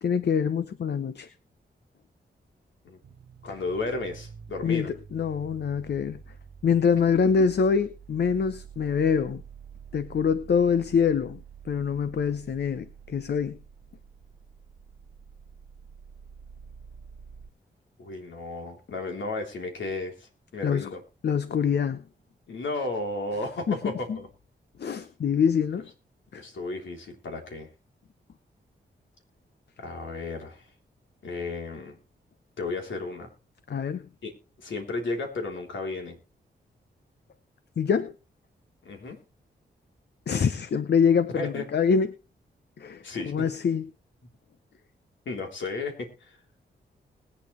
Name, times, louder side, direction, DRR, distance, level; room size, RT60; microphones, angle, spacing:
voice 1, 0.0-1.3 4.6-6.2 6.6-9.4 9.9-13.6 20.6-20.9 21.2-22.0 23.7-24.2 24.8-25.9 26.3-26.4 33.7-34.1 37.8-38.1 40.3-42.1 42.8-43.9, left 6 dB, 60° left, 0.8 m, -25 dB
sound 1, 3.0-17.5, right 7 dB, 70° right, 1.0 m, -48 dB
voice 2, 3.4-4.9 18.0-21.0 22.5-24.3 26.3-27.7 29.8-30.7 31.2-32.0 32.6-33.3 34.2-34.3 34.6-36.2 38.8-39.2 41.3-41.7 43.0-43.5 45.2-46.4, left 3 dB, 85° left, 3.5 m, -33 dB
20.5 x 8.6 x 3.2 m
cardioid pair, 70°, 19 cm